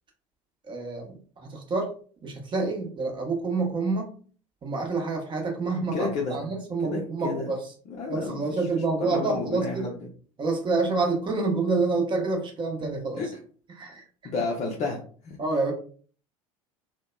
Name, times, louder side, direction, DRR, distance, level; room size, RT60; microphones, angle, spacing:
voice 1, 0.7-1.9 2.2-4.1 4.6-7.6 8.1-9.9 10.4-13.2 13.7-14.0 15.4-15.7, right 3 dB, 25° right, 2 dB, 0.8 m, -28 dB
voice 2, 5.8-6.4 6.8-7.6 7.9-10.0 13.2-13.3 14.2-15.4, left 3 dB, 40° left, 0 dB, 0.5 m, -31 dB
2.8 x 2.1 x 2.2 m, 0.43 s
figure-of-eight pair, 70°, 18 cm